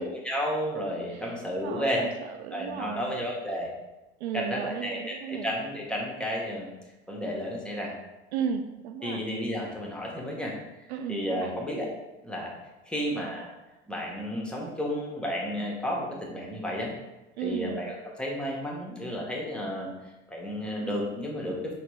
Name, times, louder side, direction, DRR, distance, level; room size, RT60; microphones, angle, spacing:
voice 1, 0.0-2.0 2.5-3.7 4.3-6.7 7.1-7.9 9.0-10.5 11.1-11.9 12.2-12.5 12.9-13.5 13.9-16.9 17.4-19.9 20.3-21.7, equal, 5° left, -2 dB, 1.2 m, -32 dB
voice 2, 1.6-3.2 4.2-5.5 8.3-9.2 10.9-11.6 17.4-17.8, right 7 dB, 75° right, 6 dB, 0.5 m, -34 dB
5.8 x 3.0 x 3.0 m, 1.0 s
figure-of-eight pair, 65°, 33 cm